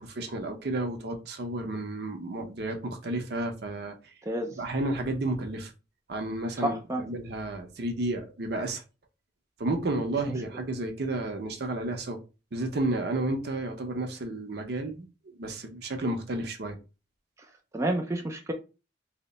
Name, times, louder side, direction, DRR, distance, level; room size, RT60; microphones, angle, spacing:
voice 1, 0.0-3.9 4.6-5.7 6.1-6.8 7.0-8.8 9.6-12.2 12.5-15.1 15.4-16.8, right 2 dB, 60° right, 0.6 m, -31 dB
voice 2, 4.2-4.6 6.6-7.0 17.7-18.5, right 1 dB, 15° right, 0.3 m, -29 dB
2.8 x 2.1 x 3.9 m
head